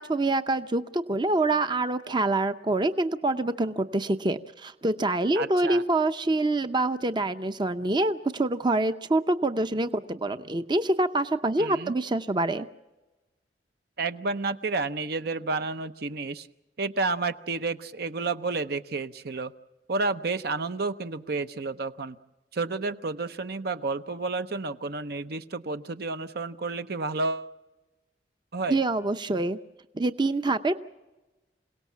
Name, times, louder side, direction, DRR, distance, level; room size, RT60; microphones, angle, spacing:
voice 1, 0.0-12.7 28.7-29.6 29.9-30.8, right 2 dB, 25° right, 10 dB, 0.7 m, -26 dB
voice 2, 5.3-5.8 11.6-11.9 14.0-16.5 16.8-19.5 19.9-22.2 22.5-27.5 28.5-28.8, right 3 dB, 60° right, 11 dB, 0.7 m, -30 dB
27.5 x 18.0 x 7.3 m, 1.1 s
head